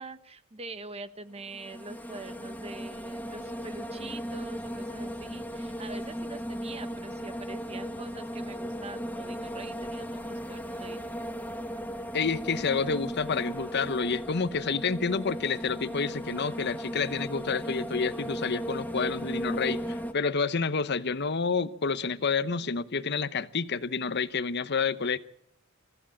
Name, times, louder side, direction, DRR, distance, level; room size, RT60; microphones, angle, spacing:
voice 1, 0.0-11.1, right 3 dB, 30° right, 1.3 m, -44 dB
sound 1, 1.4-20.1, equal, 10° left, 1.3 m, -36 dB
voice 2, 12.1-25.2, left 5 dB, 55° left, 0.9 m, -29 dB
25.0 x 15.0 x 8.6 m
head